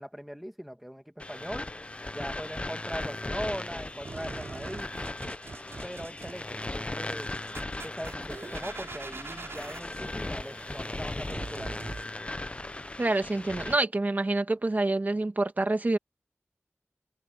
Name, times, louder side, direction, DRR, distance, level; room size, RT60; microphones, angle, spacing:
voice 1, 0.0-1.7 2.1-4.9 5.8-7.3 7.8-11.9, equal, ahead, 2.0 m, -40 dB
sound 1, 1.2-13.8, left 2 dB, 25° left, 0.7 m, -37 dB
sound 2, 4.0-12.0, right 3 dB, 70° right, 5.5 m, -44 dB
voice 2, 13.0-16.0, right 2 dB, 40° right, 2.0 m, -27 dB
wide cardioid pair, 85°, 4 cm